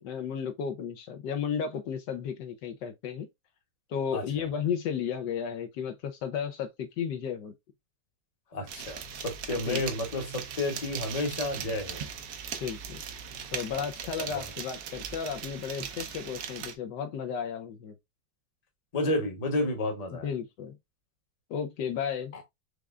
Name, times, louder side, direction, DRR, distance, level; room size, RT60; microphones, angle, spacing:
voice 1, 0.0-3.3 3.9-7.5 9.6-9.8 12.6-13.0 13.5-17.9 20.1-20.8 21.5-22.3, left 7 dB, 75° left, 1.3 m, -33 dB
voice 2, 4.1-4.5 8.5-12.0 13.7-13.9 14.2-14.4 18.9-20.3 22.3-22.4, left 1 dB, 25° left, 0.9 m, -31 dB
sound 1, 8.7-16.7, right 7 dB, 65° right, 1.1 m, -39 dB
4.8 x 3.3 x 2.4 m
omnidirectional pair, 2.0 m